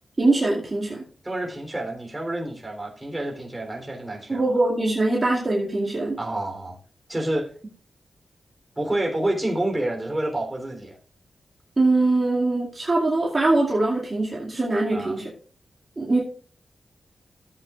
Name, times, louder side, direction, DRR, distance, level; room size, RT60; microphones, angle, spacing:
voice 1, 0.2-1.0 4.3-6.2 11.8-15.3 16.0-16.2, right 2 dB, 35° right, -4 dB, 2.4 m, -22 dB
voice 2, 1.2-4.4 6.2-6.8 7.1-7.5 8.8-11.0 14.9-15.2, right 1 dB, 15° right, 1 dB, 3.6 m, -28 dB
14.5 x 8.4 x 2.5 m, 0.43 s
cardioid pair, 80°, 0 cm